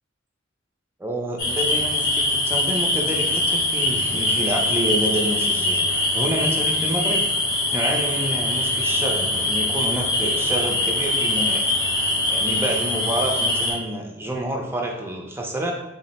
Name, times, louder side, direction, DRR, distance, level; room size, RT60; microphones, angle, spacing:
voice 1, 1.0-5.9 6.1-7.2 7.7-11.6 12.3-15.7, right 1 dB, 10° right, 0 dB, 0.5 m, -28 dB
sound 1, 1.4-13.7, left 2 dB, 55° left, 0.9 m, -23 dB
3.6 x 2.0 x 4.0 m, 0.92 s
head